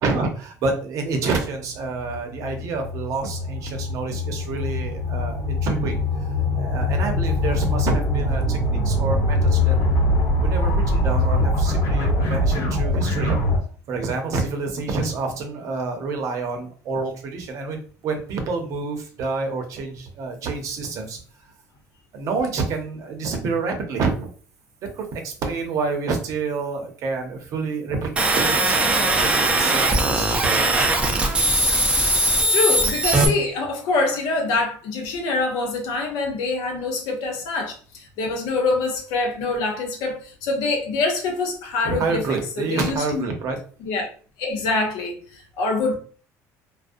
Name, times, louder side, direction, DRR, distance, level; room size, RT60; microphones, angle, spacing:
voice 1, 0.0-6.3 6.6-9.8 10.4-13.4 13.9-21.2 22.1-24.3 24.8-28.1 28.4-30.7 41.8-43.6, right 4 dB, 55° right, 0.6 m, -28 dB
sound 1, 1.1-13.6, left 1 dB, 60° left, 1.2 m, -23 dB
sound 2, 28.2-33.3, right 2 dB, 15° right, 0.4 m, -20 dB
voice 2, 32.2-42.2 42.6-43.3 43.8-44.1 44.4-45.9, left 3 dB, 80° left, 0.7 m, -25 dB
2.4 x 2.0 x 2.6 m
cardioid pair, 130°, 7 cm